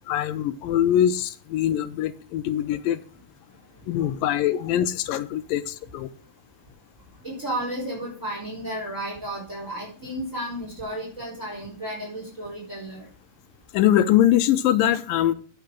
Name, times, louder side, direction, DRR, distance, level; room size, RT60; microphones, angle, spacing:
voice 1, 0.1-3.0 3.9-6.1 13.7-15.3, left 11 dB, 85° left, 13 dB, 2.4 m, -22 dB
voice 2, 7.2-13.1, right 1 dB, 20° right, -2 dB, 4.2 m, -33 dB
9.0 x 8.3 x 6.2 m, 0.42 s
omnidirectional pair, 4.1 m